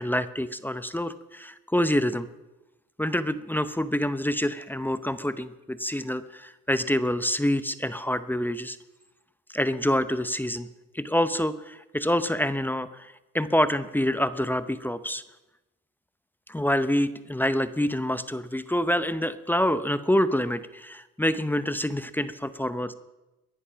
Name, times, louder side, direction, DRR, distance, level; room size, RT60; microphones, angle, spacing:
voice 1, 0.0-2.3 3.0-8.8 9.5-10.7 10.9-15.2 16.5-22.9, left 1 dB, 5° left, 13 dB, 0.7 m, -26 dB
20.5 x 11.0 x 5.8 m, 1.0 s
cardioid pair, 90°, 30 cm